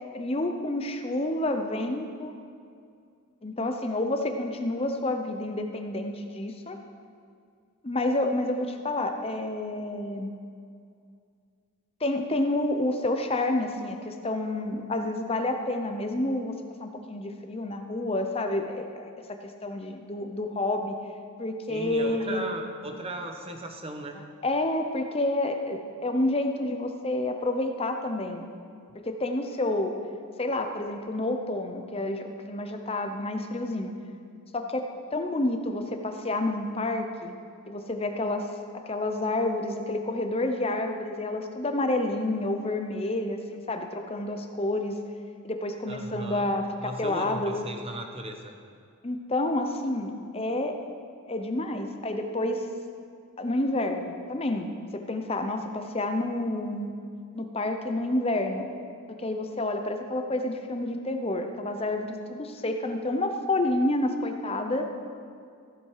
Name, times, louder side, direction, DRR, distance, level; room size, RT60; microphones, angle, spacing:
voice 1, 0.1-2.3 3.4-6.8 7.8-10.3 12.0-20.9 21.4-22.4 24.4-28.5 28.9-29.9 30.4-33.9 34.5-34.9 35.1-37.3 37.7-38.5 38.9-45.0 45.4-47.6 49.0-50.7 51.3-52.7 53.4-56.9 57.3-58.7 59.1-64.9, left 2 dB, 25° left, 5 dB, 0.7 m, -29 dB
voice 2, 21.7-24.1 45.9-46.5 46.8-48.5, right 1 dB, 25° right, 4 dB, 0.9 m, -37 dB
15.0 x 7.7 x 4.8 m, 2.3 s
head